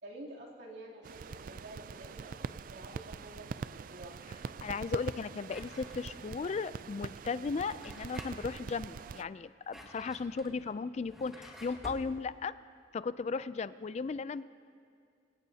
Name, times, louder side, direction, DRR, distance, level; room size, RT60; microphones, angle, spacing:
voice 1, 0.0-2.4 2.7-4.1, right 1 dB, 75° right, -4 dB, 3.0 m, -49 dB
sound 1, 1.0-9.2, right 5 dB, 50° right, 0.3 m, -43 dB
voice 2, 4.6-12.5 12.9-14.4, left 4 dB, 40° left, 15 dB, 0.3 m, -36 dB
Drawer open or close, 5.4-6.4 7.5-8.6 9.5-12.1, equal, 5° right, 1.8 m, -50 dB
25.5 x 17.0 x 2.8 m, 2.3 s
head